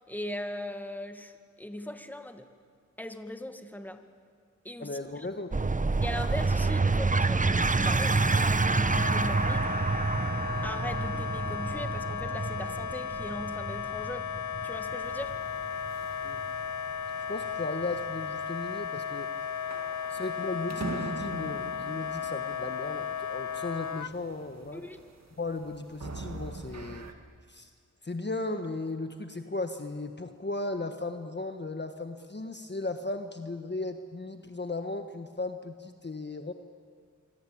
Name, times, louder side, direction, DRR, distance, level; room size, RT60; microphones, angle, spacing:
voice 1, 0.0-2.5 3.0-4.0 4.6-5.0 6.0-9.8 10.6-14.3 14.6-15.4 24.7-25.0, left 1 dB, 5° left, 7 dB, 1.9 m, -39 dB
voice 2, 4.8-5.5 16.2-16.4 17.3-19.3 20.1-24.8 25.4-27.0 27.5-27.7 28.0-36.5, left 2 dB, 35° left, 7 dB, 1.4 m, -36 dB
sound 1, 5.5-16.6, right 3 dB, 25° right, 0.9 m, -28 dB
Wind instrument woodwind instrument, 8.8-24.1, left 7 dB, 70° left, 0.7 m, -35 dB
sound 2, 15.0-27.1, right 3 dB, 60° right, 1.9 m, -45 dB
26.0 x 25.0 x 8.7 m, 2.1 s
wide cardioid pair, 60°, 31 cm